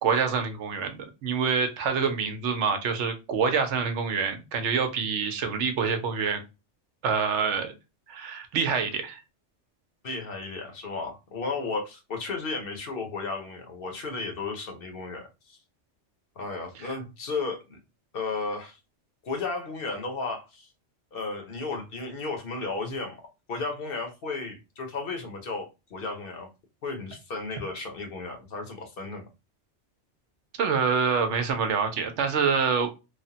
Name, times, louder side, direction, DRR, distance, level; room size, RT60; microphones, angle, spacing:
voice 1, 0.0-6.4 7.0-7.7 8.1-9.2 16.8-17.0 30.6-32.9, right 6 dB, 80° right, 0.9 m, -26 dB
voice 2, 10.0-15.6 16.4-17.8 18.1-18.8 19.2-20.7 21.1-23.2 23.5-26.5 26.8-29.3, left 3 dB, 55° left, 0.9 m, -34 dB
3.1 x 2.1 x 2.7 m
omnidirectional pair, 1.2 m